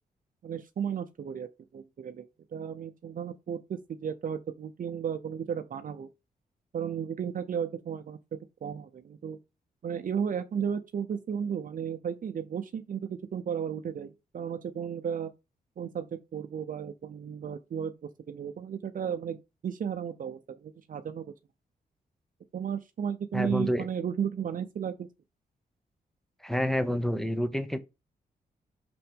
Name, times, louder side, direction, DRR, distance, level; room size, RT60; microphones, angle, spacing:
voice 1, 0.4-2.2 2.5-6.1 6.7-9.4 9.8-15.3 15.8-19.4 19.6-21.3 22.5-25.1, right 8 dB, 60° right, 0.7 m, -34 dB
voice 2, 23.3-23.9 26.4-27.8, equal, ahead, 1.0 m, -28 dB
6.1 x 5.8 x 3.6 m
cardioid pair, 95°, 16 cm